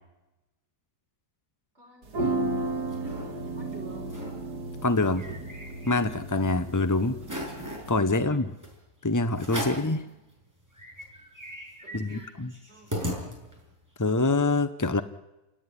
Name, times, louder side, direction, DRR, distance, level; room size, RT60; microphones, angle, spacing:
voice 1, 1.7-4.3 8.1-8.5 9.5-10.3 11.8-12.3 12.7-13.2, right 2 dB, 40° right, 0 dB, 7.1 m, -51 dB
sound 1, 2.0-8.0, right 2 dB, 90° right, 2.5 m, -34 dB
sound 2, 2.7-3.3 3.7-3.8 4.0-4.4 4.8-6.3 6.7-6.8 7.2-7.9 8.6-8.8 9.4-9.9 10.4-10.5 10.7-13.7, equal, 10° right, 7.1 m, -37 dB
voice 2, 4.8-5.3 5.9-7.2 7.9-8.5 9.0-10.0 11.9-12.5 14.0-15.0, left 2 dB, 20° left, 11 dB, 0.5 m, -25 dB
30.0 x 18.5 x 9.9 m, 1.0 s
omnidirectional pair, 1.7 m